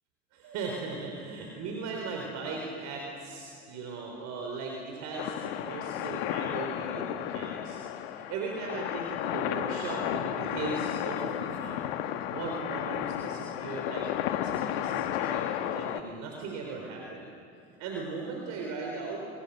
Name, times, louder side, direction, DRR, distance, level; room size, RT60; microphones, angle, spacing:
voice 1, 0.3-7.8 8.1-11.9 12.3-17.3 17.8-19.3, right 4 dB, 60° right, 1 dB, 4.2 m, -38 dB
sound 1, 5.2-16.0, left 11 dB, 70° left, 1.4 m, -33 dB
25.5 x 25.5 x 6.8 m, 2.5 s
hypercardioid pair, 70°, 32 cm